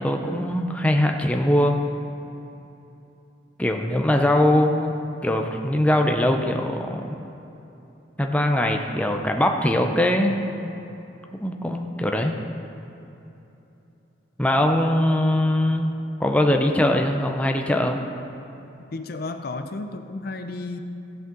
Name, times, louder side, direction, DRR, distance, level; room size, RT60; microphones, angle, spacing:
voice 1, 0.0-1.8 3.6-4.9 5.2-7.2 8.2-10.8 11.4-12.3 14.4-15.9 16.2-18.0, left 1 dB, 5° left, 3 dB, 0.5 m, -21 dB
voice 2, 18.9-20.8, left 3 dB, 55° left, 8 dB, 0.5 m, -32 dB
15.0 x 8.0 x 3.8 m, 3.0 s
head